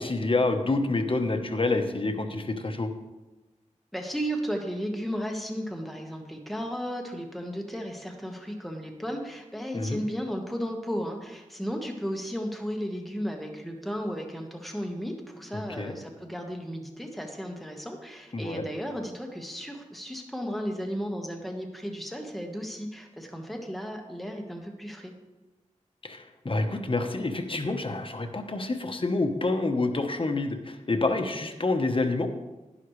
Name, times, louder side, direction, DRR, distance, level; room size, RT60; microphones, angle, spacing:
voice 1, 0.0-2.9 9.7-10.0 15.8-15.9 18.3-18.6 26.0-32.3, left 2 dB, 45° left, 5 dB, 1.1 m, -27 dB
voice 2, 3.9-25.1, equal, ahead, 2 dB, 1.4 m, -34 dB
11.0 x 10.5 x 3.2 m, 1.1 s
wide cardioid pair, 70°, 13 cm